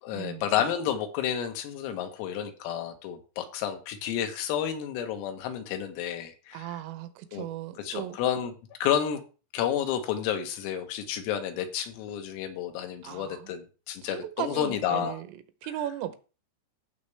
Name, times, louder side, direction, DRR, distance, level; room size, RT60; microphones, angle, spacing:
voice 1, 0.0-6.8 7.3-7.5 7.8-8.5 8.8-9.2 9.5-15.2 15.6-15.8, left 9 dB, 80° left, 3.8 m, -31 dB
voice 2, 6.5-8.2 13.0-13.4 14.0-15.3 15.6-16.2, right 12 dB, 80° right, 3.2 m, -36 dB
15.0 x 6.0 x 3.3 m
omnidirectional pair, 6.0 m